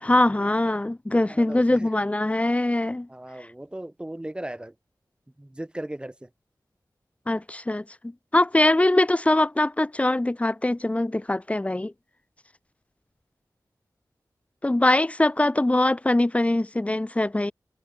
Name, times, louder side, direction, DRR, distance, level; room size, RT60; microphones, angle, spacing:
voice 1, 0.0-3.1 7.3-11.9 14.6-17.5, left 1 dB, 20° left, 0.8 m, -22 dB
voice 2, 1.3-1.9 3.1-4.7 5.4-6.3, right 1 dB, 15° right, 1.3 m, -37 dB
wide cardioid pair, 75°, 7 cm